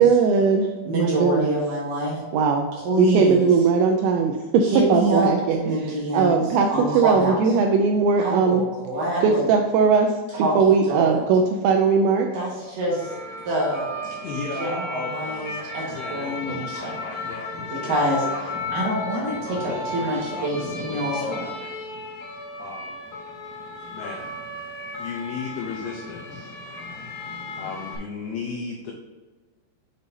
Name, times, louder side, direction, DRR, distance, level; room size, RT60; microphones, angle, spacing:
voice 1, 0.0-1.6 2.3-2.7 3.0-4.4 4.8-6.7 6.9-8.7 9.2-12.3, right 5 dB, 85° right, 3 dB, 2.6 m, -19 dB
voice 2, 0.8-2.2 2.7-3.4 4.6-7.4 8.2-9.5 10.3-11.2 12.3-13.1 13.5-13.9 14.6-17.0 17.7-18.3 18.7-21.5, right 1 dB, 60° right, -5 dB, 2.4 m, -26 dB
sound 1, 12.9-28.0, left 2 dB, 65° left, 2.5 m, -34 dB
voice 3, 14.0-15.6 15.9-18.8 19.6-21.8 22.6-23.0 23.9-24.3 25.0-26.5 27.5-28.9, left 5 dB, 90° left, 0 dB, 2.2 m, -36 dB
7.2 x 6.5 x 2.7 m, 1.3 s
omnidirectional pair, 5.7 m